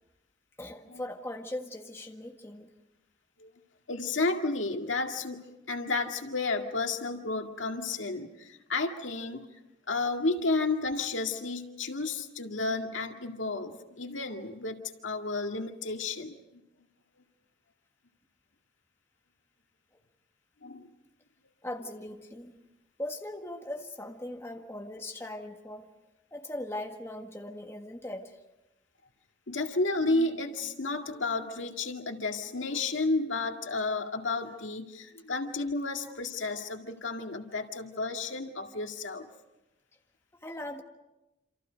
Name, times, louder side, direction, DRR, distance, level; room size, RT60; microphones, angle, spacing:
voice 1, 0.6-2.7 21.6-22.6 23.0-25.9 26.3-28.3 40.4-40.8, left 1 dB, 15° left, 3 dB, 1.5 m, -39 dB
voice 2, 3.9-9.5 9.9-16.3 20.6-20.9 29.5-39.3, left 3 dB, 90° left, 4 dB, 2.1 m, -32 dB
28.0 x 27.0 x 5.2 m, 0.95 s
head